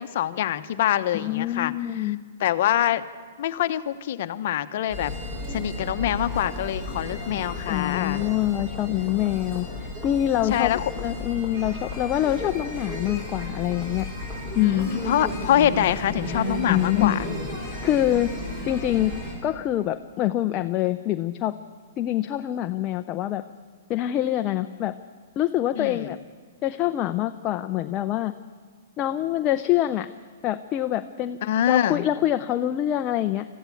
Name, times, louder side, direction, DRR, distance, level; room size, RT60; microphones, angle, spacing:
voice 1, 0.0-2.1 2.4-3.0 3.4-5.1 5.5-8.2 10.5-10.9 14.6-17.2 25.7-26.1 31.4-32.1, left 11 dB, 50° left, 11 dB, 0.9 m, -25 dB
voice 2, 1.1-2.2 7.7-14.1 14.6-14.9 16.7-17.2 17.8-18.3 18.7-19.1 19.4-21.5 22.0-23.4 23.9-24.9 25.4-26.2 26.6-28.3 29.0-30.1 30.4-31.4 31.7-33.5, left 13 dB, 25° left, 8 dB, 0.5 m, -25 dB
sound 1, 4.9-19.3, left 1 dB, 15° right, 5.1 m, -33 dB
21.5 x 14.0 x 8.5 m, 1.5 s
hypercardioid pair, 160°, 0 cm